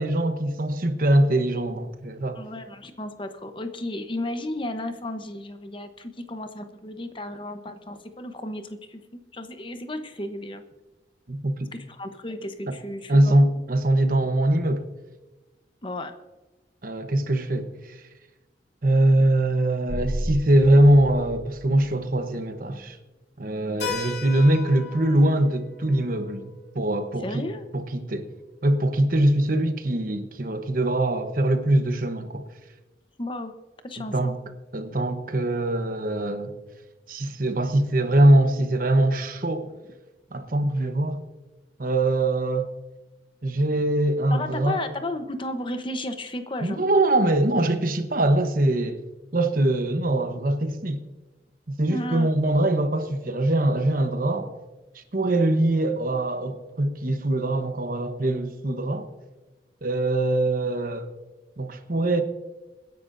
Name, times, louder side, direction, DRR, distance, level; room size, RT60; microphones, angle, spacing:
voice 1, 0.0-2.4 11.3-11.7 13.1-14.9 16.8-17.7 18.8-23.0 23.4-27.5 27.7-28.3 28.6-32.4 34.0-34.4 34.7-36.5 37.1-39.7 40.3-41.2 41.8-42.7 43.4-44.8 46.6-49.0 49.3-51.0 51.8-54.5 54.9-59.1 59.8-61.1 61.6-62.2, right 1 dB, 50° right, 1.1 m, -22 dB
voice 2, 2.3-10.6 11.7-13.3 15.8-16.1 27.2-27.7 33.2-33.5 33.8-34.4 44.3-46.8 51.9-52.3, left 1 dB, 30° left, 1.0 m, -33 dB
sound 1, 19.9-22.3, equal, 85° right, 1.3 m, -33 dB
Keyboard (musical), 23.8-28.3, left 4 dB, 70° left, 2.7 m, -38 dB
26.5 x 10.5 x 2.6 m
head